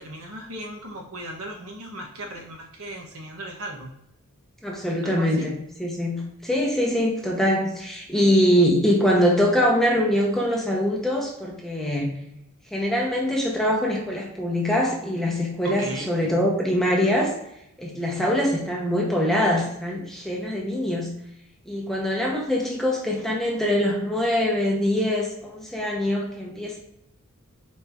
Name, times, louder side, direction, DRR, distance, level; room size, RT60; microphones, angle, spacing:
voice 1, 0.0-3.9 5.0-5.5 8.1-8.3 15.6-16.1, right 1 dB, 75° right, 2 dB, 0.8 m, -37 dB
voice 2, 4.6-5.5 5.8-12.1 12.7-17.3 17.8-21.1 21.7-26.8, equal, ahead, -2 dB, 0.7 m, -23 dB
4.2 x 2.5 x 3.4 m, 0.78 s
head